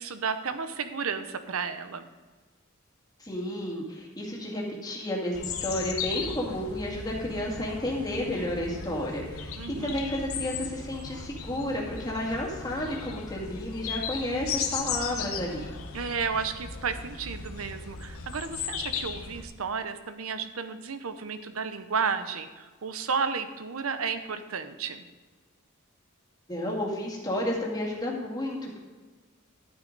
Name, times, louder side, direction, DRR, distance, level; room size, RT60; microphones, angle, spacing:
voice 1, 0.0-2.1 9.6-10.0 15.9-25.1, right 5 dB, 80° right, 10 dB, 0.8 m, -32 dB
voice 2, 3.2-15.7 26.5-28.8, left 1 dB, 20° left, -2 dB, 2.3 m, -32 dB
sound 1, 5.3-19.4, left 6 dB, 85° left, 1.1 m, -36 dB
12.5 x 8.7 x 4.0 m, 1.4 s
head